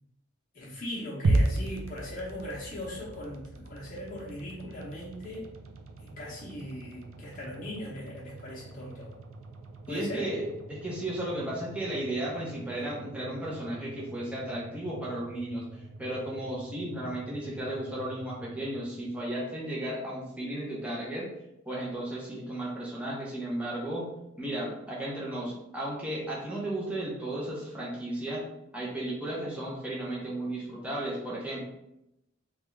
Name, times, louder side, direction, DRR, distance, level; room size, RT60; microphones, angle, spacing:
voice 1, 0.5-5.5 6.0-9.1 9.9-10.3, left 1 dB, 40° left, -5 dB, 0.8 m, -39 dB
sound 1, 1.2-19.5, right 2 dB, 85° right, 0.4 m, -37 dB
voice 2, 9.9-10.4 10.7-15.6 16.0-21.3 21.7-24.1 24.4-28.4 28.7-31.6, right 1 dB, 5° right, -6 dB, 0.7 m, -34 dB
3.3 x 2.4 x 3.1 m, 0.86 s
head